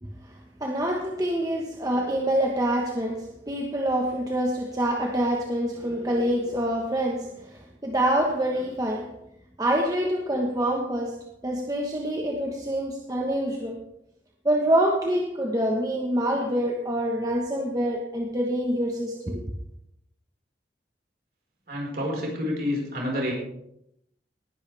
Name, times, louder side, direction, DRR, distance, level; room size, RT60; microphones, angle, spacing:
voice 1, 0.0-9.2 9.6-13.9 14.4-19.4, right 1 dB, 20° right, 1.3 m, -26 dB
voice 2, 21.7-23.3, left 1 dB, 55° right, 4.9 m, -28 dB
19.0 x 11.5 x 3.5 m
head